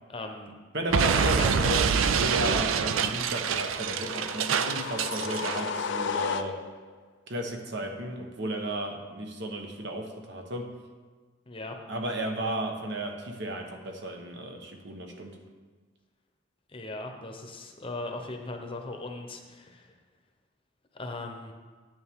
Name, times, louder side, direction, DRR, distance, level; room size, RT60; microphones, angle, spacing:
voice 1, 0.1-0.5 1.1-1.8 11.5-11.8 16.7-19.9 20.9-21.5, left 2 dB, 25° left, 4 dB, 0.8 m, -38 dB
voice 2, 0.7-6.6 7.3-10.7 11.9-15.4, right 1 dB, 60° right, 3 dB, 1.1 m, -34 dB
Explosion, 0.9-5.7, right 6 dB, 85° right, 0.5 m, -26 dB
sound 1, 3.7-6.9, left 5 dB, 65° left, 0.4 m, -34 dB
9.7 x 9.0 x 3.6 m, 1.4 s
head